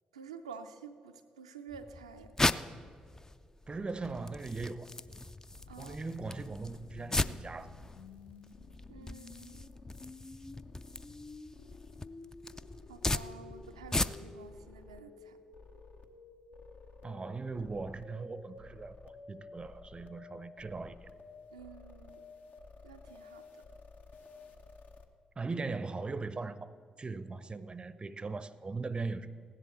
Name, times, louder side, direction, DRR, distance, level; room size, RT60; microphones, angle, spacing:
voice 1, 0.1-2.3 5.7-6.0 8.9-9.7 12.9-15.4 21.5-22.2 22.8-23.6, right 5 dB, 90° right, 0.4 m, -50 dB
sound 1, 1.7-14.5, left 2 dB, 15° left, 0.4 m, -38 dB
voice 2, 3.7-4.9 5.8-7.8 17.0-21.1 25.4-26.7 27.0-29.3, right 3 dB, 30° right, 0.5 m, -39 dB
sound 2, 5.5-25.0, left 3 dB, 55° left, 0.9 m, -52 dB
16.0 x 10.5 x 4.3 m
hypercardioid pair, 40°, 3 cm